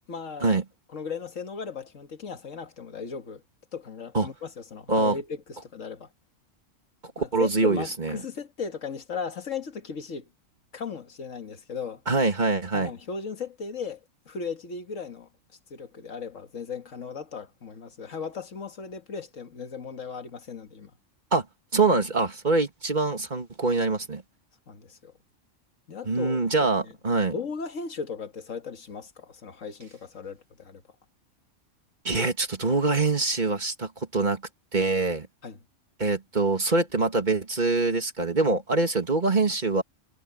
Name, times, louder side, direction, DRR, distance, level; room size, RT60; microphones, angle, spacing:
voice 1, 0.1-0.6 0.9-3.4 3.7-6.1 7.2-10.3 10.7-12.0 12.7-15.3 15.7-20.9 24.7-25.1 25.9-26.4 26.8-26.9 27.3-30.8 35.4-35.6, left 5 dB, 90° left, 2.0 m, -37 dB
voice 2, 7.2-8.1 12.1-12.9 21.3-21.5 21.7-24.2 26.1-27.3 32.0-34.4 34.7-35.3 36.0-39.8, right 3 dB, 35° right, 2.2 m, -24 dB
omnidirectional pair, 1.3 m